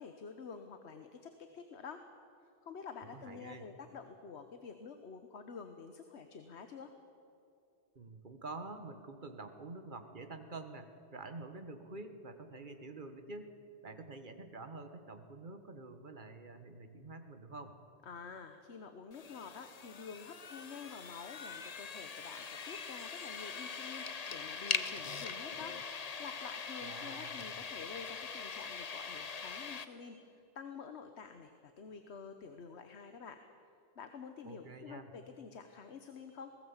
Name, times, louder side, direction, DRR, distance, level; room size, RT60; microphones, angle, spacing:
voice 1, 0.0-2.0 2.4-6.9 18.0-33.4 33.9-36.5, left 5 dB, 75° left, 7 dB, 1.3 m, -49 dB
voice 2, 3.1-3.6 7.9-13.5 13.8-17.8 26.8-27.5 34.4-35.1, right 3 dB, 45° right, 7 dB, 1.6 m, -47 dB
sound 1, 19.1-29.9, left 5 dB, 40° left, 0.8 m, -42 dB
21.0 x 18.0 x 7.3 m, 2.6 s
omnidirectional pair, 1.1 m